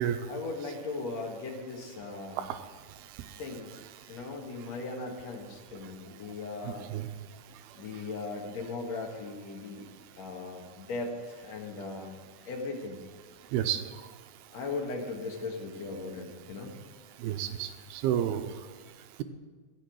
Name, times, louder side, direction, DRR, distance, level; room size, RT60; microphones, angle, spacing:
voice 1, 0.3-2.4 3.4-3.7 4.1-6.9 7.7-9.9 10.2-12.1 12.4-13.1 14.5-16.7, left 3 dB, 50° left, 1 dB, 2.5 m, -38 dB
voice 2, 6.7-7.1 13.5-13.8 17.2-18.4, right 10 dB, 90° right, 8 dB, 2.7 m, -30 dB
16.0 x 6.7 x 7.8 m, 1.4 s
omnidirectional pair, 4.5 m